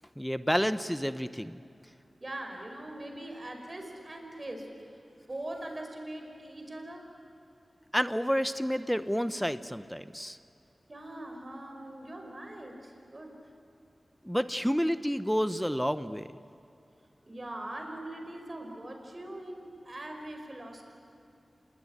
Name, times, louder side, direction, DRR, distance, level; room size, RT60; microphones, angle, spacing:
voice 1, 0.2-1.6 7.9-10.4 14.2-16.3, equal, ahead, 12 dB, 0.8 m, -29 dB
voice 2, 2.2-4.7 5.3-7.1 10.9-13.4 17.2-20.8, right 1 dB, 40° right, 3 dB, 5.2 m, -41 dB
27.5 x 20.0 x 9.9 m, 2.6 s
wide cardioid pair, 60°, 0 cm